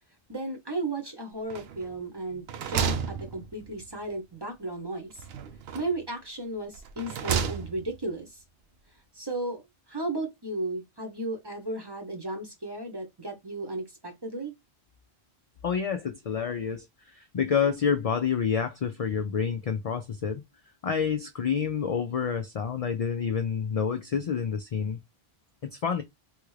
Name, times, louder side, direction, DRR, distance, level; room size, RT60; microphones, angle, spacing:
voice 1, 0.3-5.2 5.7-8.4 9.1-9.6 9.9-14.5, right 2 dB, 25° right, 0.8 m, -34 dB
sound 1, 1.5-2.0 2.3-3.9 5.2-6.1 6.7-8.0, right 7 dB, 75° right, 0.8 m, -32 dB
voice 2, 15.6-20.4 20.8-25.0 25.6-26.0, left 7 dB, 55° left, 0.4 m, -28 dB
3.5 x 2.4 x 3.2 m
omnidirectional pair, 1.1 m